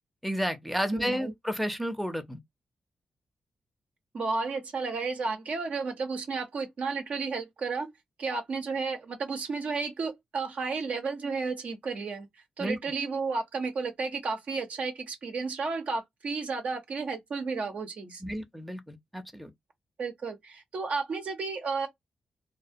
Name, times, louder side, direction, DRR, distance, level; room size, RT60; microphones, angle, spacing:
voice 1, 0.2-2.4 12.6-12.8 18.2-19.5, equal, ahead, 0.5 m, -31 dB
voice 2, 0.9-1.3 4.1-7.9 8.2-12.3 12.6-18.2 20.0-21.9, right 4 dB, 70° right, 0.6 m, -32 dB
2.3 x 2.1 x 2.6 m
cardioid pair, 80°, 2 cm